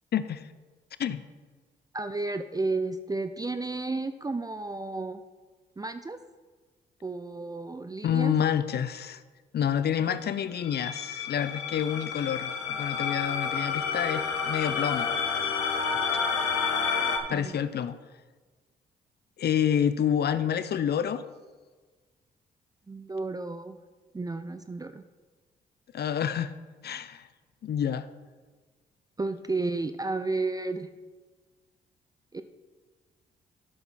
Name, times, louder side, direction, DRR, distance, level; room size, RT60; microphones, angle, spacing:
voice 1, 0.1-0.5 1.0-1.2 8.0-9.2 9.5-15.1 17.3-18.0 19.4-21.2 25.9-26.5 26.8-27.3 27.6-28.1, left 9 dB, 50° left, 14 dB, 0.6 m, -28 dB
voice 2, 1.9-5.2 5.8-6.2 7.0-8.3 17.3-17.6 22.9-23.8 24.1-25.0 29.2-30.9 32.3-32.4, right 3 dB, 20° right, 10 dB, 0.5 m, -32 dB
sound 1, 10.5-17.2, left 5 dB, 85° left, 0.9 m, -29 dB
10.0 x 7.2 x 4.1 m, 1.4 s
hypercardioid pair, 45°, 21 cm